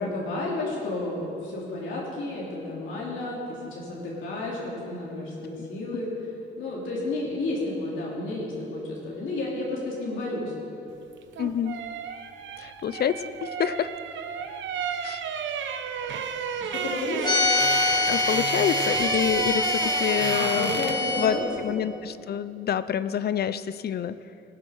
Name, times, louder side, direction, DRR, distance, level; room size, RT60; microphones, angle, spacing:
voice 1, 0.0-6.1 6.6-10.5 16.6-17.3 20.3-21.7, left 2 dB, 75° left, -4 dB, 3.2 m, -31 dB
sound 1, 11.1-21.1 21.4-21.6, right 7 dB, 70° right, 1.0 m, -32 dB
voice 2, 11.4-11.8 12.6-13.9 15.0-15.2 18.1-20.8 21.2-24.2, left 9 dB, 55° left, 14 dB, 0.6 m, -27 dB
sound 2, 17.2-21.3, left 3 dB, 20° left, 1.8 m, -25 dB
18.5 x 7.4 x 6.5 m, 2.7 s
cardioid pair, 90°, 20 cm